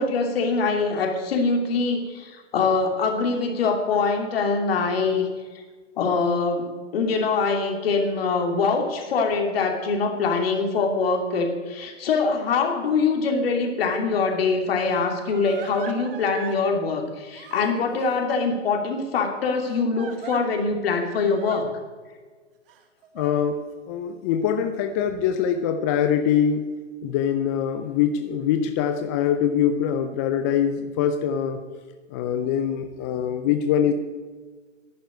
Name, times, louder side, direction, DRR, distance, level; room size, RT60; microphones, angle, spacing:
voice 1, 0.0-5.3 6.0-21.7, left 4 dB, 55° left, 4 dB, 2.9 m, -23 dB
Crying sobbing, 13.8-13.9 14.8-16.6 17.3-18.2 19.6-20.4 21.2-21.6 22.7-23.3, right 8 dB, 50° right, 1.4 m, -41 dB
voice 2, 23.2-26.7 27.0-31.6 32.1-33.9, left 8 dB, 15° left, 8 dB, 0.4 m, -23 dB
11.0 x 8.9 x 9.4 m, 1.4 s
hypercardioid pair, 130°, 36 cm